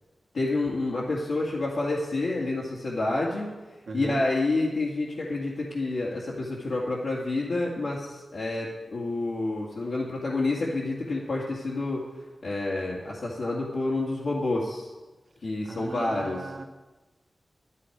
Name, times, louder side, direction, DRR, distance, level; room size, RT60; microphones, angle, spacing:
voice 1, 0.3-3.5 3.9-12.0 12.4-14.9 15.4-16.4, left 2 dB, 85° left, -6 dB, 2.1 m, -28 dB
voice 2, 3.8-4.2 15.6-16.6, right 3 dB, 80° right, 0 dB, 1.5 m, -37 dB
12.5 x 12.0 x 4.8 m, 1.2 s
wide cardioid pair, 90°, 0 cm